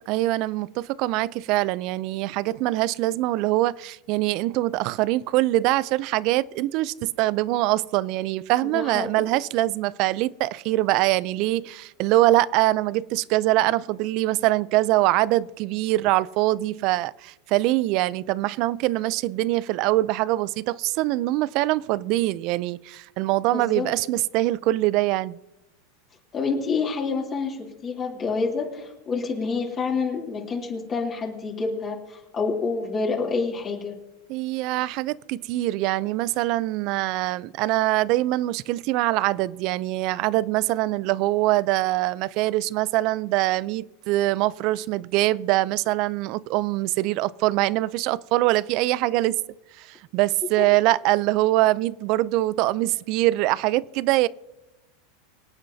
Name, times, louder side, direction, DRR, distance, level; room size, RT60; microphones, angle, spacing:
voice 1, 0.1-25.4 34.3-49.4 49.8-54.3, right 17 dB, 50° right, 0.4 m, -23 dB
voice 2, 8.7-9.1 23.5-23.9 26.3-33.9, left 4 dB, 30° left, 2.9 m, -28 dB
25.0 x 8.8 x 2.7 m
supercardioid pair, 125°, 0 cm